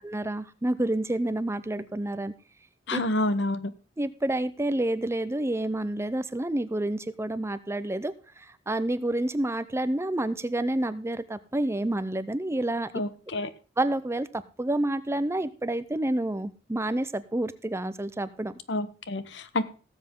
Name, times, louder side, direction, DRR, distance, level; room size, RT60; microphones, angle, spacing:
voice 1, 0.0-2.3 2.9-3.0 4.0-12.9 13.8-18.5, right 1 dB, 15° right, 14 dB, 0.6 m, -29 dB
voice 2, 2.9-3.7 12.9-13.5 18.7-19.6, left 2 dB, 70° left, 14 dB, 1.0 m, -28 dB
17.5 x 7.7 x 3.7 m, 0.35 s
head